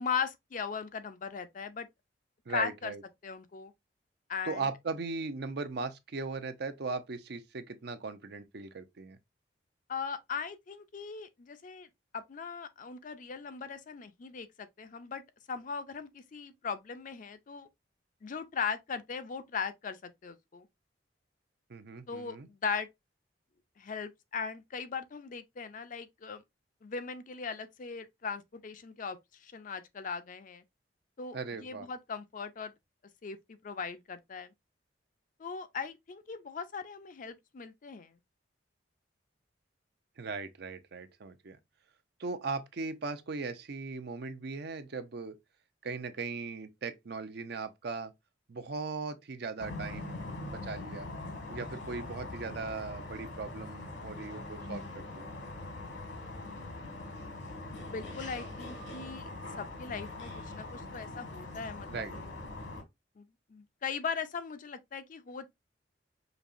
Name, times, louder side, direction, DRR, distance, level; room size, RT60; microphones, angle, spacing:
voice 1, 0.0-1.9 2.5-2.9 3.2-3.7 4.3-4.6 9.9-11.9 12.1-17.7 18.2-20.7 22.1-22.9 23.8-26.4 26.8-30.6 31.2-32.7 33.2-34.5 35.4-38.1 57.7-59.3 59.6-62.0 63.2-65.5, left 6 dB, 45° left, 0.4 m, -39 dB
voice 2, 2.5-3.0 4.4-9.2 21.7-22.5 31.3-31.9 40.2-41.6 42.2-45.4 45.8-48.1 48.5-51.1 51.5-55.3 61.9-62.1, right 4 dB, 60° right, 0.6 m, -38 dB
sound 1, 49.6-62.8, left 2 dB, 85° left, 1.6 m, -42 dB
5.2 x 2.8 x 2.5 m
head